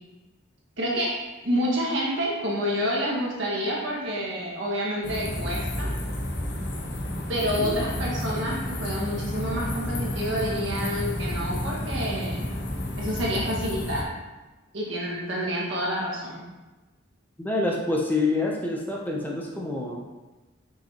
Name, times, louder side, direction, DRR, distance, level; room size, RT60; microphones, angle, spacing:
voice 1, 0.8-5.9 7.3-12.5 13.0-14.1 14.7-16.4, equal, 65° right, -4 dB, 1.6 m, -28 dB
sound 1, 5.0-14.0, left 1 dB, 60° left, 0.9 m, -31 dB
voice 2, 17.4-20.0, left 2 dB, 10° left, -1 dB, 0.5 m, -27 dB
5.8 x 5.6 x 2.9 m, 1.2 s
head